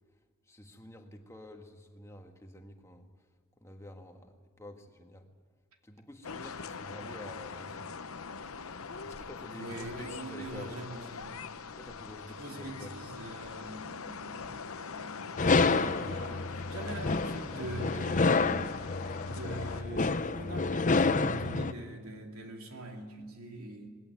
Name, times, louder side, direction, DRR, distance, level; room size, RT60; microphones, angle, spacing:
voice 1, 0.5-3.1 3.6-5.3 5.8-7.9 9.0-10.8 11.7-13.0, left 1 dB, 15° left, 4 dB, 1.5 m, -48 dB
sound 1, 6.2-19.8, left 5 dB, 75° left, 0.9 m, -43 dB
voice 2, 9.5-11.5 12.4-18.5 19.2-23.9, right 2 dB, 75° right, 2 dB, 2.8 m, -43 dB
sound 2, 15.4-21.7, left 3 dB, 35° left, 0.6 m, -29 dB
20.0 x 16.5 x 9.6 m, 1.5 s
head